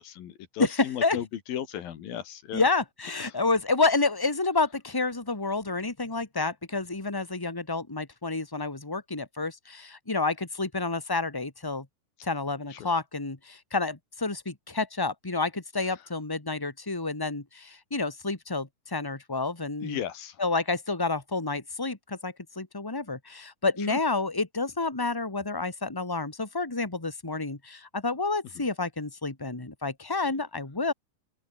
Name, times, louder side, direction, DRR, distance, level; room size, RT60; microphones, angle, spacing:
voice 1, 0.0-2.7 3.2-3.4 12.7-12.9 19.8-20.4 23.9-24.0 28.6-28.7, left 10 dB, 75° left, 3.6 m, -36 dB
voice 2, 0.6-1.2 2.5-11.8 12.2-20.0 20.4-30.9, left 3 dB, 10° left, 0.9 m, -29 dB
open air
omnidirectional pair, 4.2 m